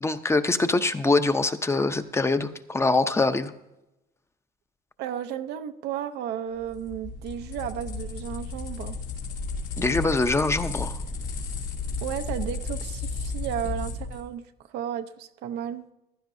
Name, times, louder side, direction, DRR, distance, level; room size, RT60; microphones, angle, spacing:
voice 1, 0.0-3.5 9.8-11.0, left 3 dB, 15° left, 10 dB, 0.7 m, -24 dB
voice 2, 5.0-9.0 12.0-14.4 14.7-15.8, right 10 dB, 85° right, 7 dB, 0.7 m, -33 dB
sound 1, 6.6-14.2, left 4 dB, 85° left, 2.8 m, -33 dB
15.0 x 11.5 x 2.7 m, 0.91 s
cardioid pair, 110°, 17 cm